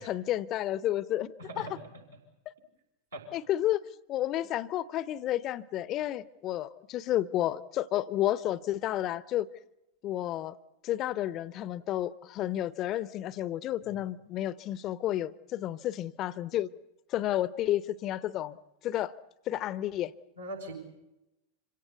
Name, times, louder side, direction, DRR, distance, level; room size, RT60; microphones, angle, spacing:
voice 1, 0.0-1.7 3.3-3.8 4.1-9.5 10.0-10.6 10.8-16.7 17.1-18.6 18.8-19.1 19.5-20.1, left 13 dB, 35° left, 0.7 m, -31 dB
voice 2, 1.4-1.8 3.1-3.3 13.8-13.9 20.4-20.7, right 1 dB, 80° right, 5.6 m, -41 dB
26.5 x 17.0 x 8.2 m
figure-of-eight pair, 90°, 0 cm